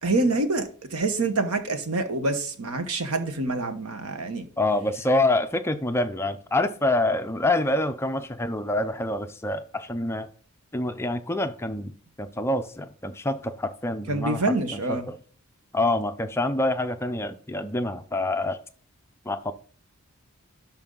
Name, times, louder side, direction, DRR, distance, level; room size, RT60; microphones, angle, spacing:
voice 1, 0.0-4.5 14.1-15.1, right 2 dB, 75° right, 1.1 m, -26 dB
voice 2, 4.6-10.3 10.7-11.9 12.2-14.4 15.1-15.2 15.7-18.6 19.3-19.5, left 2 dB, 10° left, 0.5 m, -26 dB
12.0 x 4.4 x 3.9 m
head